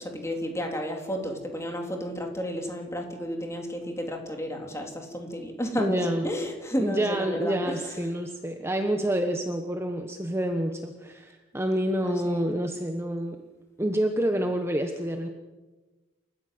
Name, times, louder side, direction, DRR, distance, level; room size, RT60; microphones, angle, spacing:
voice 1, 0.0-8.0 12.0-12.5, equal, 15° left, 2 dB, 3.7 m, -32 dB
voice 2, 5.8-6.3 6.8-13.4 13.8-15.3, equal, 15° right, 4 dB, 1.2 m, -28 dB
29.0 x 14.5 x 7.9 m, 1.2 s
head